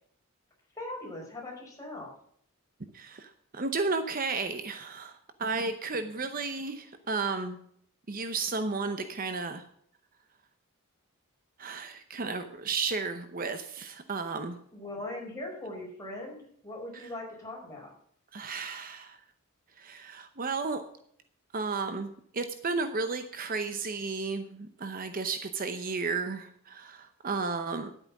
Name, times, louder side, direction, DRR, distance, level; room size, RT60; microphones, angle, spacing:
voice 1, 0.7-2.1 14.7-17.9, left 1 dB, 15° left, -3 dB, 5.0 m, -40 dB
voice 2, 2.9-7.6 8.1-9.6 11.6-14.6 16.9-17.1 18.3-19.2 19.8-20.8 21.5-27.9, right 4 dB, 40° right, 9 dB, 0.8 m, -33 dB
10.5 x 8.9 x 5.9 m, 0.65 s
head